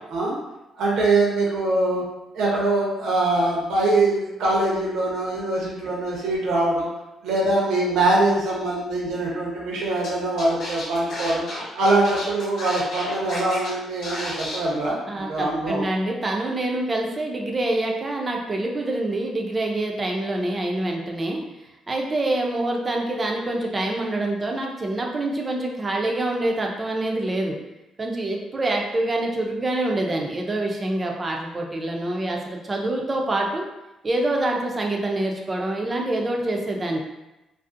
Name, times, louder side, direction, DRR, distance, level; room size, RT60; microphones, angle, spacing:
voice 1, 0.8-2.0 2.3-6.9 7.2-11.4 11.7-15.9, right 2 dB, 80° right, -4 dB, 0.7 m, -23 dB
Scratching (performance technique), 10.0-10.1 10.4-13.7 14.0-14.6, left 1 dB, 70° left, 0.9 m, -32 dB
voice 2, 15.1-21.4 21.9-27.6 28.0-33.7 34.0-37.0, right 2 dB, 30° right, 0 dB, 0.5 m, -26 dB
2.5 x 2.0 x 2.5 m, 0.97 s
cardioid pair, 90°, 0 cm